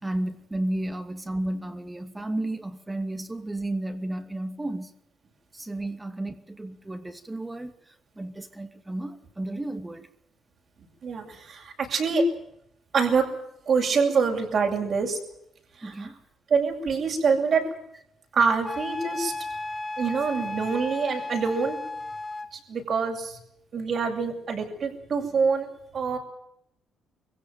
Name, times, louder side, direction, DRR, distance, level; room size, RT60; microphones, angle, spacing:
voice 1, 0.0-4.9 5.5-10.1 15.8-16.2, right 1 dB, 15° right, 2.5 m, -33 dB
voice 2, 11.0-12.3 12.9-13.3 13.7-15.2 15.8-16.1 16.5-17.7 18.3-19.3 20.0-21.8 22.5-23.4 23.7-25.7 25.9-26.2, right 5 dB, 55° right, 8.0 m, -25 dB
Wind instrument woodwind instrument, 18.6-22.5, left 2 dB, 20° left, 1.6 m, -34 dB
24.0 x 16.5 x 9.4 m
cardioid pair, 90°, 0 cm